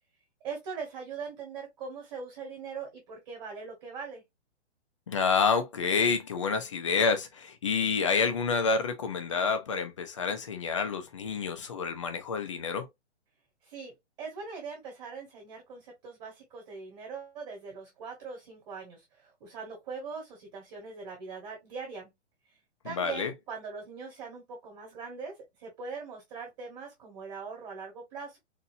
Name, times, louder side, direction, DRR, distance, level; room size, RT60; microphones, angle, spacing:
voice 1, 0.4-4.2 13.6-22.1 22.8-28.4, right 5 dB, 20° right, 1.4 m, -41 dB
voice 2, 5.1-12.9 22.8-23.3, left 5 dB, 25° left, 0.5 m, -28 dB
4.2 x 2.7 x 2.6 m
hypercardioid pair, 165°, 35 cm